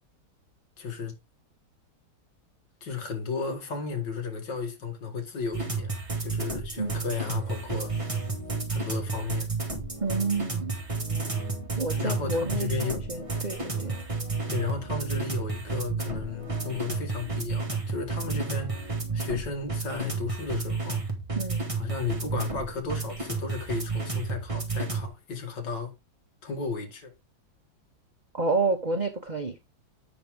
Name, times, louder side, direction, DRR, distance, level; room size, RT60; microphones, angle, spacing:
voice 1, 0.8-1.1 2.8-7.9 8.7-9.5 11.9-13.0 14.5-21.0 21.8-25.9 26.4-27.1, left 5 dB, 60° left, 2.2 m, -34 dB
sound 1, 5.5-25.1, right 4 dB, 20° right, 1.5 m, -31 dB
voice 2, 10.0-10.8 11.8-13.9 21.3-21.6 28.3-29.6, right 3 dB, 45° right, 0.5 m, -29 dB
8.3 x 6.1 x 3.5 m
omnidirectional pair, 2.2 m